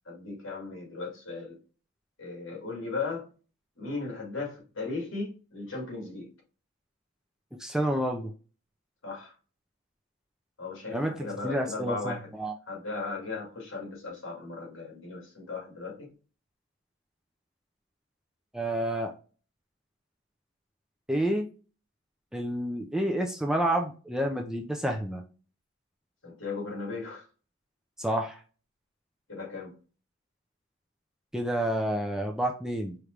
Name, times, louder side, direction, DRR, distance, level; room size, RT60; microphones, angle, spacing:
voice 1, 0.1-1.6 2.2-3.3 3.8-6.3 9.0-9.3 10.6-12.3 12.7-16.1 26.2-27.2 29.3-29.7, left 3 dB, 70° left, 2.2 m, -37 dB
voice 2, 7.6-8.3 10.9-12.5 18.5-19.1 21.1-21.5 22.3-25.2 28.0-28.4 31.3-33.0, right 1 dB, 5° right, 0.4 m, -29 dB
5.0 x 3.0 x 3.2 m
head